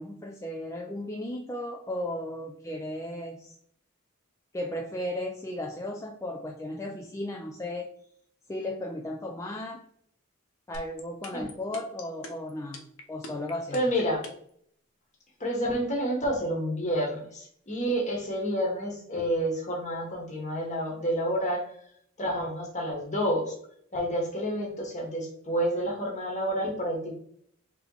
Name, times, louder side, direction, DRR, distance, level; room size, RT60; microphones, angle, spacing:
voice 1, 0.0-3.6 4.5-7.9 8.5-9.8 10.7-12.8 13.1-13.8, left 1 dB, 15° left, 2 dB, 0.3 m, -35 dB
sound 1, 10.7-14.5, left 3 dB, 80° left, 0.8 m, -41 dB
voice 2, 13.7-14.2 15.4-21.6 22.2-23.5 23.9-27.1, equal, 35° left, 0 dB, 1.2 m, -29 dB
3.4 x 3.0 x 3.8 m, 0.65 s
head